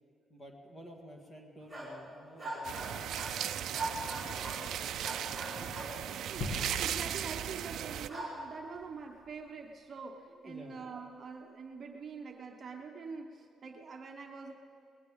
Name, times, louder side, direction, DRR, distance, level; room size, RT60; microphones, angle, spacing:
voice 1, 0.3-3.4 3.8-5.1 5.5-6.2 10.3-10.8, equal, 25° left, 1 dB, 1.9 m, -52 dB
sound 1, 1.6-2.0 2.4-3.4 3.7-4.7 5.0-6.0 8.1-8.4, right 2 dB, 10° left, 4.6 m, -40 dB
sound 2, 2.6-8.1, right 10 dB, 70° right, 0.4 m, -37 dB
voice 2, 6.3-14.5, right 5 dB, 35° right, 2 dB, 1.0 m, -45 dB
sound 3, 6.4-8.8, left 1 dB, 80° left, 1.5 m, -41 dB
20.0 x 18.5 x 3.7 m, 2.2 s
cardioid pair, 180°, 0 cm